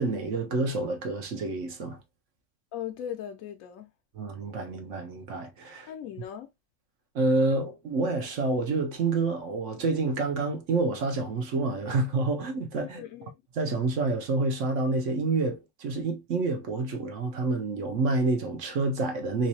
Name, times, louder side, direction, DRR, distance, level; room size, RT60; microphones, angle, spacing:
voice 1, 0.0-2.0 4.2-5.9 7.1-13.0 13.6-19.5, right 3 dB, 65° right, 1.1 m, -28 dB
voice 2, 2.7-3.9 5.9-6.5 12.8-13.4, left 10 dB, 75° left, 1.0 m, -38 dB
3.2 x 3.0 x 2.7 m
omnidirectional pair, 1.4 m